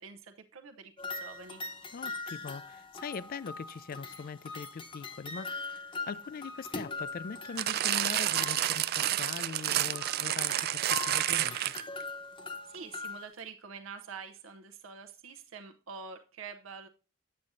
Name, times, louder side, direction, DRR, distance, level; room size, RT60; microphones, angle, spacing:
voice 1, 0.0-1.6 12.6-16.9, right 5 dB, 80° right, 0.7 m, -46 dB
sound 1, 1.0-9.3 9.9-13.3, left 3 dB, 25° left, 0.8 m, -42 dB
voice 2, 1.9-5.8 6.1-11.6, left 6 dB, 45° left, 0.4 m, -42 dB
sound 2, 7.6-12.0 12.7-12.8, right 13 dB, 50° right, 0.3 m, -30 dB
8.6 x 7.5 x 2.5 m
head